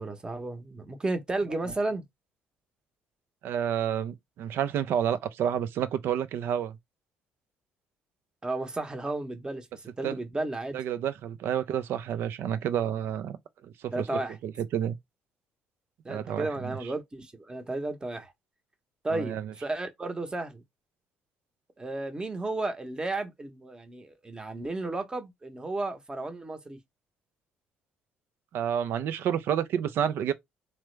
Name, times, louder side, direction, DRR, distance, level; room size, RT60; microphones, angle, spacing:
voice 1, 0.0-2.0 8.4-10.8 13.9-14.4 16.0-18.3 19.0-20.6 21.8-26.8, right 2 dB, 20° right, 0.9 m, -33 dB
voice 2, 3.4-6.8 10.0-10.2 10.7-13.4 13.6-14.1 14.4-15.0 16.1-16.8 19.1-19.5 28.5-30.3, right 9 dB, 70° right, 0.5 m, -29 dB
3.3 x 2.1 x 3.2 m
supercardioid pair, 70°, 4 cm